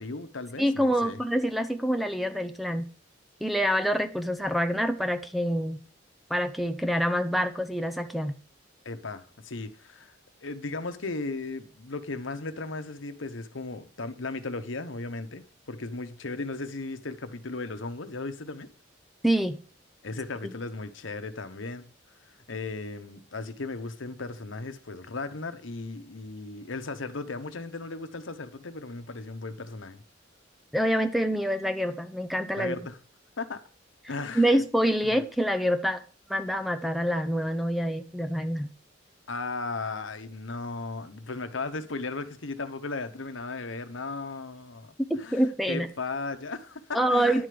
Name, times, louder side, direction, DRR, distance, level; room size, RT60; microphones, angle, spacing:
voice 1, 0.0-1.2 8.8-10.1 10.4-18.7 20.0-21.8 22.5-30.0 32.5-33.0 33.4-33.6 34.1-34.5 35.0-35.2 39.3-47.5, left 3 dB, 85° left, 1.1 m, -36 dB
voice 2, 0.6-2.9 3.4-5.8 6.3-8.3 19.2-19.6 30.7-32.8 34.3-36.0 36.3-38.7 45.1-45.9 46.9-47.5, equal, ahead, 0.7 m, -26 dB
10.5 x 5.0 x 7.7 m
head